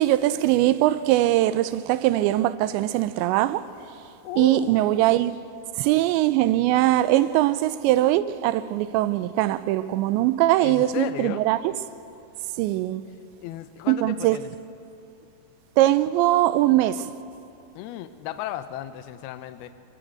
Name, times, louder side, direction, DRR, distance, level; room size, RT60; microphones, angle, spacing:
voice 1, 0.0-3.7 4.4-5.4 5.8-11.7 12.6-13.0 13.9-14.4 15.8-17.1, right 15 dB, 90° right, 2.9 m, -21 dB
voice 2, 4.2-5.0 10.6-11.4 13.4-14.5 17.8-19.7, left 12 dB, 75° left, 2.4 m, -34 dB
22.5 x 20.0 x 7.9 m
omnidirectional pair, 5.1 m